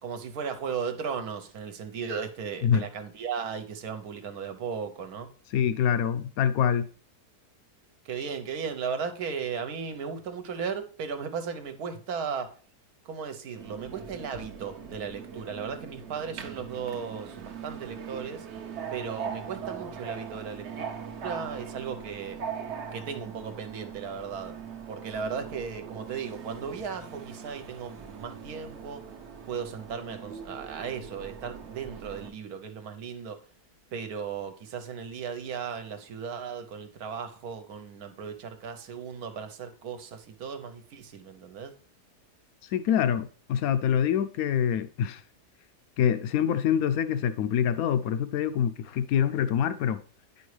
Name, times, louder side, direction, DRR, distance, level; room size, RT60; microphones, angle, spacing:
voice 1, 0.0-5.3 8.0-12.6 13.0-18.5 18.9-20.9 21.2-22.4 22.9-24.6 24.9-29.0 29.5-33.4 33.9-41.7, right 6 dB, 70° right, 1.3 m, -36 dB
voice 2, 5.5-6.9 42.7-45.2 46.0-50.0, left 9 dB, 70° left, 1.0 m, -25 dB
Subway metro underground, 13.6-32.3, right 7 dB, 55° right, 0.9 m, -41 dB
9.5 x 5.3 x 3.2 m
omnidirectional pair, 1.7 m